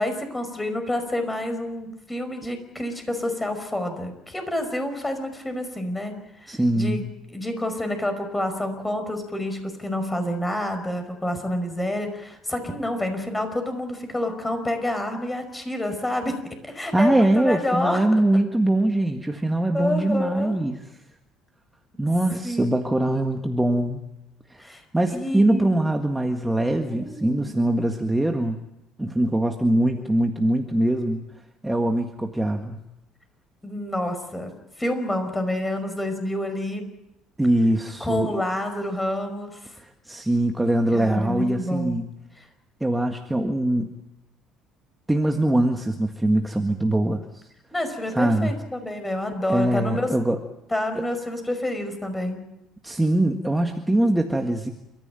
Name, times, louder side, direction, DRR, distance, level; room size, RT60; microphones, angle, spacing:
voice 1, 0.0-16.4 16.6-18.0 19.7-20.6 22.4-23.0 24.6-24.8 25.1-25.8 26.8-27.5 33.6-36.9 38.0-39.7 40.9-42.0 47.7-50.1 50.7-52.5, left 1 dB, 10° left, 7 dB, 5.3 m, -28 dB
voice 2, 6.5-7.1 16.9-20.8 22.0-24.0 24.5-24.7 24.9-28.6 29.0-31.2 31.6-32.8 37.4-38.3 39.8-42.1 42.8-43.9 45.1-47.2 48.1-48.5 49.5-50.4 50.9-51.0 52.8-54.7, right 1 dB, 10° right, 3 dB, 1.7 m, -22 dB
29.0 x 14.5 x 9.1 m, 0.89 s
cardioid pair, 110°, 0 cm